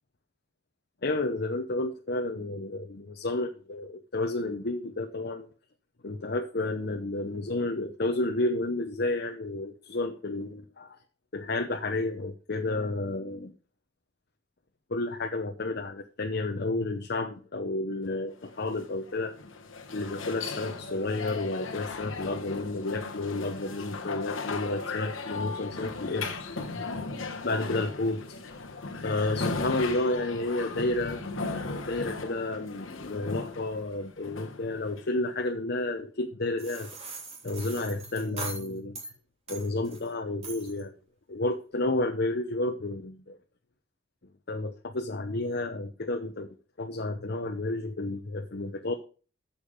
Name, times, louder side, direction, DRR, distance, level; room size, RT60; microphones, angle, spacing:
voice 1, 1.0-5.5 6.0-11.0 11.3-13.5 14.9-19.3 19.9-26.4 26.7-26.8 27.4-28.6 29.0-31.2 31.5-36.9 37.4-39.0 39.5-40.9 41.3-43.4 44.5-46.5 46.8-48.9, left 2 dB, 55° left, 4 dB, 0.8 m, -31 dB
sound 1, 18.4-35.4, left 3 dB, 85° left, 1.3 m, -37 dB
sound 2, 36.6-39.1 39.5-40.1 40.4-40.8, right 3 dB, 35° right, 3.2 m, -41 dB
8.6 x 7.2 x 5.0 m, 0.37 s
head